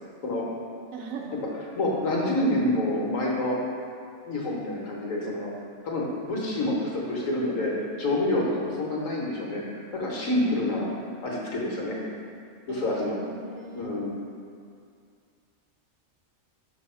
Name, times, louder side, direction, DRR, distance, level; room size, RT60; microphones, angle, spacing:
voice 1, 0.9-1.4 12.7-14.0, right 3 dB, 85° right, 1 dB, 1.1 m, -40 dB
voice 2, 1.8-3.6 4.3-5.5 5.8-10.9 11.2-12.0 12.7-13.2 13.7-14.1, left 1 dB, 85° left, -3 dB, 1.4 m, -27 dB
5.4 x 3.3 x 5.5 m, 2.3 s
omnidirectional pair, 1.3 m